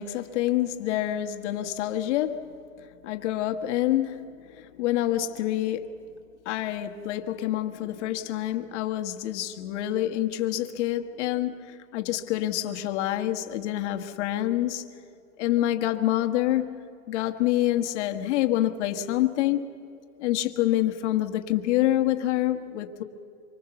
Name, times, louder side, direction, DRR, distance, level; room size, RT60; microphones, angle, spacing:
voice 1, 0.0-2.4 3.0-4.3 4.6-6.0 6.4-14.8 15.4-19.7 20.2-23.0, left 13 dB, 55° left, 1.6 m, -27 dB
25.5 x 24.5 x 7.0 m
hypercardioid pair, 140°, 41 cm